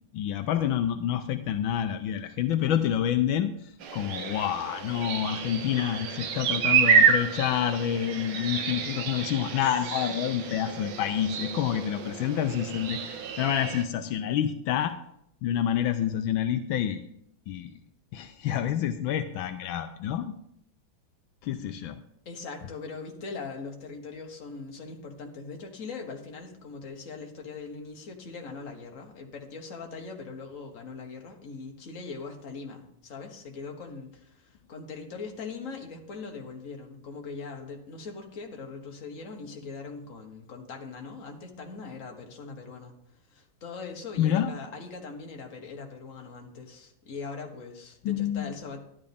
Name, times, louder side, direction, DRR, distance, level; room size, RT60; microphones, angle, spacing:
voice 1, 0.1-3.5 3.9-14.9 15.4-17.0 17.5-17.7 18.1-20.3 21.4-22.0 44.2-44.5 48.0-48.5, left 10 dB, 80° left, 9 dB, 1.4 m, -28 dB
sound 1, 3.8-13.8, right 6 dB, 80° right, 1.8 m, -28 dB
voice 2, 22.3-42.9 43.3-48.8, left 4 dB, 40° left, 2 dB, 1.7 m, -41 dB
12.0 x 10.5 x 3.5 m, 0.73 s
omnidirectional pair, 2.2 m